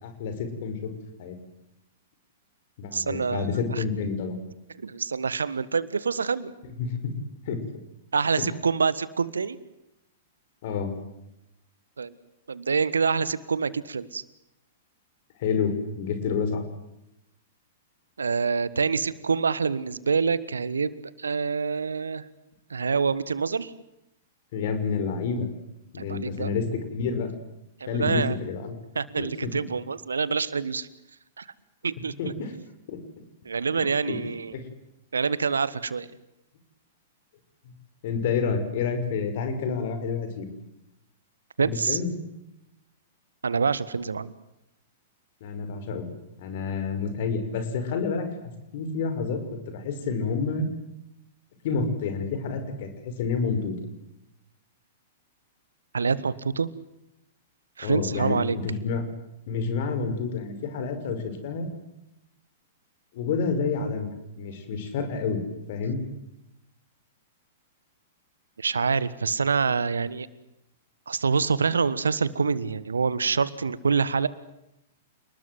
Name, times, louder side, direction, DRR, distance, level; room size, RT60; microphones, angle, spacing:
voice 1, 0.0-0.9 1.2-1.4 2.8-4.4 6.8-7.1 7.5-7.6 8.4-8.5 10.6-11.0 15.4-16.6 24.5-25.5 25.9-27.3 27.9-28.8 29.2-29.5 32.2-32.5 32.9-33.0 34.1-34.2 34.5-34.7 38.0-40.5 41.6-42.1 45.4-46.1 46.4-50.7 51.6-53.7 57.8-59.0 59.5-61.7 63.1-65.4 65.7-66.0, left 5 dB, 50° left, 8 dB, 5.8 m, -29 dB
voice 2, 2.9-3.8 4.8-6.5 8.1-9.6 12.0-12.2 12.5-14.2 18.2-22.2 22.7-23.7 26.0-26.5 27.8-28.4 28.9-30.9 31.4-31.5 31.8-32.3 33.4-34.6 35.1-36.1 41.6-42.0 43.4-44.3 55.9-56.7 57.8-58.6 68.6-70.3 71.1-74.3, right 5 dB, 75° right, 18 dB, 1.4 m, -26 dB
29.0 x 20.5 x 7.9 m, 0.87 s
figure-of-eight pair, 105°, 0 cm